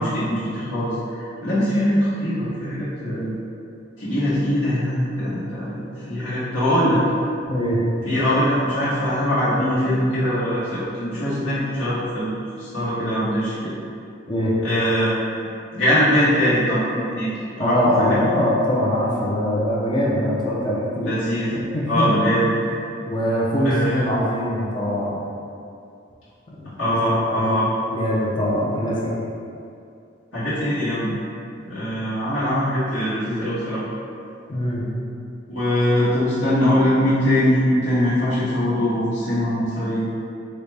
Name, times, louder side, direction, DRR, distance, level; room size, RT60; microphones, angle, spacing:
voice 1, 0.0-3.3 4.0-5.8 6.1-7.0 8.0-13.7 14.6-15.1 15.7-18.2 21.0-21.5 21.9-22.5 23.6-24.0 26.8-27.7 30.3-31.1 31.7-33.8 35.5-40.0, equal, 70° left, -13 dB, 0.9 m, -22 dB
voice 2, 7.5-7.8 14.3-14.5 17.6-21.2 21.5-22.1 23.1-25.2 26.5-29.1 34.5-34.9, equal, 25° left, -6 dB, 0.4 m, -23 dB
3.9 x 2.1 x 3.3 m, 2.5 s
head